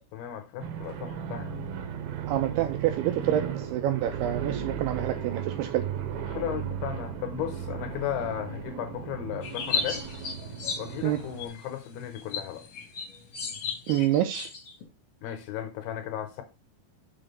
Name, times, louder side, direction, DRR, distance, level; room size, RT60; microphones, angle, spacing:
voice 1, 0.1-1.5 6.3-10.0 10.8-12.6 15.2-16.4, left 10 dB, 75° left, 2.5 m, -35 dB
sound 1, 0.6-11.5, right 8 dB, 70° right, 2.6 m, -35 dB
voice 2, 2.3-5.8 11.0-11.2 13.9-14.5, right 12 dB, 85° right, 2.2 m, -27 dB
sound 2, 9.4-14.8, left 5 dB, 60° left, 1.7 m, -35 dB
6.8 x 3.7 x 5.2 m
omnidirectional pair, 5.0 m